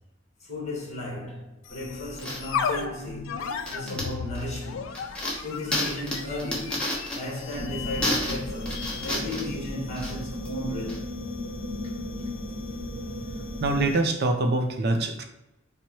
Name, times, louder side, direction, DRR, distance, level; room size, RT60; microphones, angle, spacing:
voice 1, 0.4-3.4 3.6-4.9 5.4-11.2, left 1 dB, 35° left, 1.3 m, -35 dB
sound 1, 1.6-14.1, left 6 dB, 75° left, 0.3 m, -37 dB
sound 2, 1.7-11.1, left 1 dB, 5° left, 1.1 m, -33 dB
sound 3, 7.5-13.9, left 1 dB, 90° right, 0.8 m, -35 dB
voice 2, 13.6-15.2, right 2 dB, 55° right, 0.5 m, -24 dB
4.5 x 2.1 x 4.3 m
head